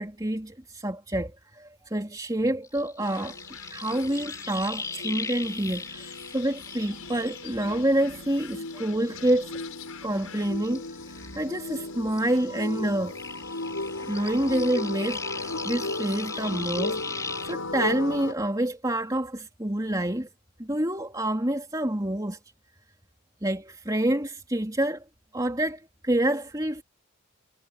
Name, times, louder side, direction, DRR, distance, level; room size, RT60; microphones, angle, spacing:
voice 1, 0.0-3.4 3.7-9.5 10.0-13.1 14.1-20.3 20.6-22.4 23.4-25.0 25.3-26.8, right 1 dB, 20° right, 3.1 m, -28 dB
sound 1, 2.6-8.2 8.5-11.9 12.1-17.5, left 3 dB, 15° left, 5.2 m, -39 dB
sound 2, 3.0-18.3, left 2 dB, 85° left, 6.5 m, -36 dB
head